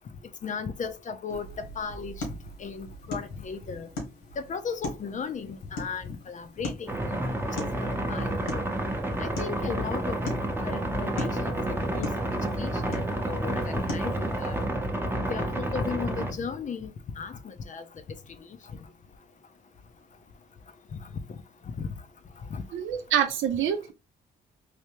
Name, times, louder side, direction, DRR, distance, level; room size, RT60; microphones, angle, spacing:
voice 1, 0.4-2.2 2.6-3.9 4.4-7.2 7.6-8.6 9.2-10.3 10.6-12.1 12.6-14.6 15.3-16.9 17.2-17.9 21.8-21.9 22.5-22.6, left 6 dB, 40° left, 0.5 m, -36 dB
sound 1, 1.3-14.7, left 1 dB, 90° left, 1.6 m, -41 dB
sound 2, 6.9-16.3, right 1 dB, 10° right, 0.7 m, -30 dB
voice 2, 22.7-23.9, right 9 dB, 80° right, 0.7 m, -26 dB
3.3 x 2.7 x 2.9 m
cardioid pair, 90°, 20 cm